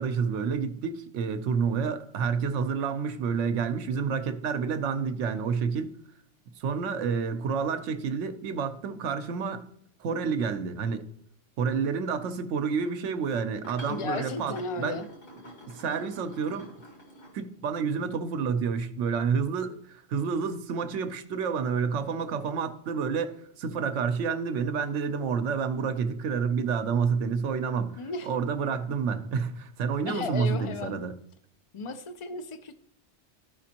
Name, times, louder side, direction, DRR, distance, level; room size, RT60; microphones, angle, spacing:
voice 1, 0.0-5.9 6.6-9.6 10.0-11.1 11.6-15.0 15.7-16.7 17.3-31.1, right 6 dB, 80° right, 1.0 m, -29 dB
sound 1, 12.7-12.9 13.5-17.8 20.9-21.1, equal, 75° left, 2.3 m, -48 dB
voice 2, 13.9-15.1 28.0-28.3 30.0-31.0 31.7-32.7, left 4 dB, 50° left, 0.3 m, -34 dB
13.0 x 5.1 x 2.8 m
omnidirectional pair, 1.2 m